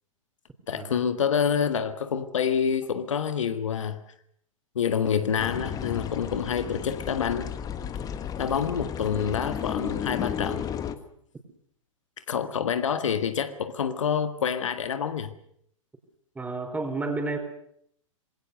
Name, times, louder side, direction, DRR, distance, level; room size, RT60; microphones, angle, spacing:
voice 1, 0.7-4.0 4.7-7.5 8.4-10.7 12.3-15.3, left 7 dB, 65° left, 10 dB, 1.7 m, -27 dB
sound 1, 5.4-10.9, left 8 dB, 20° left, 1.5 m, -33 dB
voice 2, 16.3-17.4, right 3 dB, 10° right, 6 dB, 4.3 m, -30 dB
26.5 x 21.5 x 6.7 m, 0.69 s
figure-of-eight pair, 105°, 17 cm